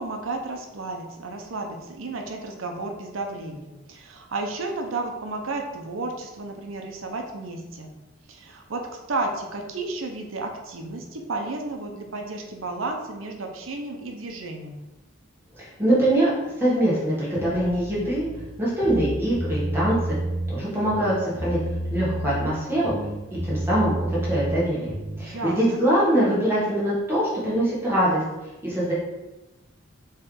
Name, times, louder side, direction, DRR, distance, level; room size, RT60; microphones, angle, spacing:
voice 1, 0.0-7.9 8.3-14.7 25.2-25.8, right 2 dB, 90° right, 3 dB, 0.7 m, -32 dB
voice 2, 15.6-16.3 16.6-18.3 18.6-20.0 20.5-21.6 21.9-22.9 23.3-28.2 28.6-28.9, right 1 dB, 10° right, -8 dB, 1.2 m, -23 dB
sound 1, 17.4-18.4 18.8-20.5 20.9-22.6 22.8-25.2, right 1 dB, 60° right, 0.9 m, -30 dB
4.4 x 3.2 x 3.8 m, 1.0 s
head